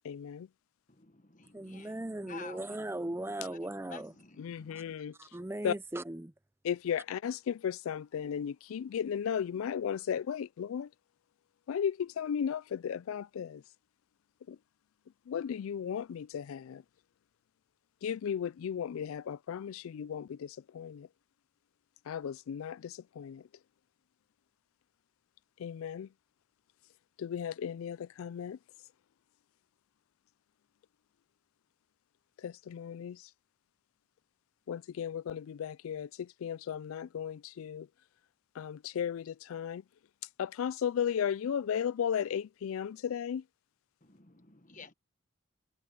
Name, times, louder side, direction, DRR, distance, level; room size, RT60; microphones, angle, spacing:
voice 1, 0.0-0.5 4.4-5.1 5.6-5.8 6.6-10.9 11.7-13.6 14.5-14.6 15.3-16.8 18.0-21.1 22.1-23.5 25.6-26.1 27.2-28.6 32.4-33.3 34.7-37.9 38.6-39.8 40.4-43.4, left 8 dB, 75° left, 0.3 m, -35 dB
voice 2, 0.9-5.0 44.0-44.9, left 4 dB, 35° left, 1.4 m, -52 dB
voice 3, 1.5-4.1 4.7-4.8 5.2-6.3, right 1 dB, 10° right, 0.5 m, -38 dB
head